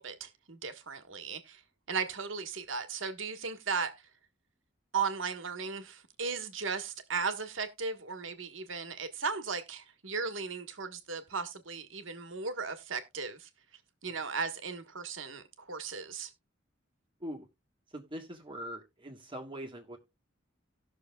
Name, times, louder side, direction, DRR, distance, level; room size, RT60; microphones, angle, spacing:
voice 1, 0.0-1.6 1.9-3.9 4.9-13.5 14.0-16.3, right 5 dB, 70° right, 1.4 m, -36 dB
voice 2, 17.9-20.0, equal, 25° right, 1.6 m, -42 dB
18.5 x 6.4 x 2.3 m
head